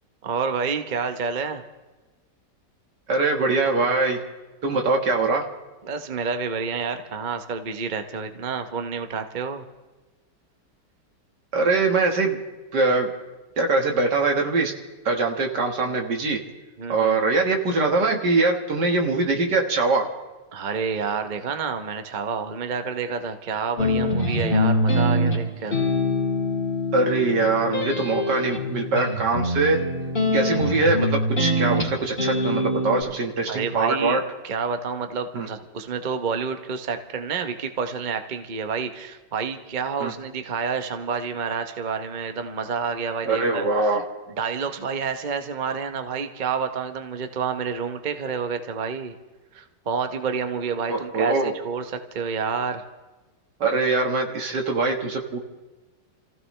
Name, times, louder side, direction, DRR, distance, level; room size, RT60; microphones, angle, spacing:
voice 1, 0.2-1.6 5.8-9.6 16.8-17.2 20.5-25.8 33.5-43.6 44.4-49.1 49.5-52.9, right 5 dB, 35° right, 7 dB, 0.8 m, -29 dB
voice 2, 3.1-4.2 4.6-5.4 11.5-12.4 12.7-13.1 13.6-14.7 15.1-16.4 16.9-20.1 26.9-29.8 30.3-34.2 35.3-35.5 40.0-40.1 43.3-44.0 50.9-51.5 53.6-55.4, right 3 dB, 70° right, 3 dB, 2.3 m, -22 dB
sound 1, 23.8-33.0, left 1 dB, 30° left, 2.5 m, -24 dB
29.0 x 15.5 x 3.2 m, 1.2 s
omnidirectional pair, 1.9 m